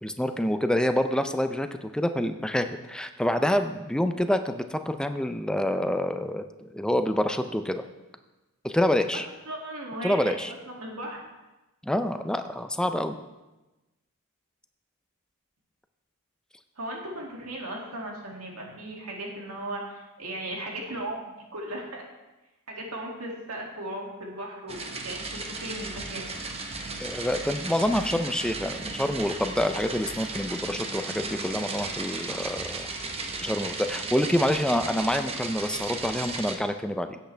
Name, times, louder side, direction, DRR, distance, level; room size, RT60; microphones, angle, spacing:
voice 1, 0.0-7.8 8.6-9.3 10.0-10.5 11.8-13.2 27.0-32.9 33.4-37.2, left 1 dB, 5° left, 8 dB, 0.5 m, -27 dB
voice 2, 9.5-11.2 16.8-22.0 22.7-26.2, right 1 dB, 80° right, -1 dB, 2.4 m, -37 dB
sound 1, 24.7-36.6, right 3 dB, 25° right, 0.9 m, -35 dB
16.5 x 8.2 x 3.4 m, 1.1 s
head